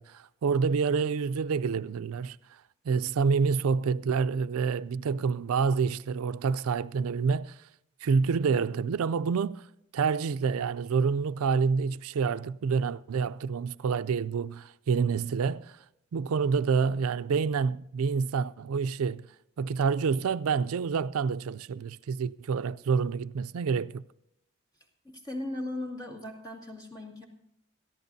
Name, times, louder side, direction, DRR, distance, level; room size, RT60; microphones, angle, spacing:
voice 1, 0.0-2.4 2.9-7.6 8.0-9.6 9.9-15.8 16.1-19.2 19.6-24.0, right 5 dB, 80° right, 0.4 m, -28 dB
voice 2, 25.0-27.3, left 1 dB, 20° left, 2.2 m, -37 dB
22.0 x 14.0 x 2.7 m
head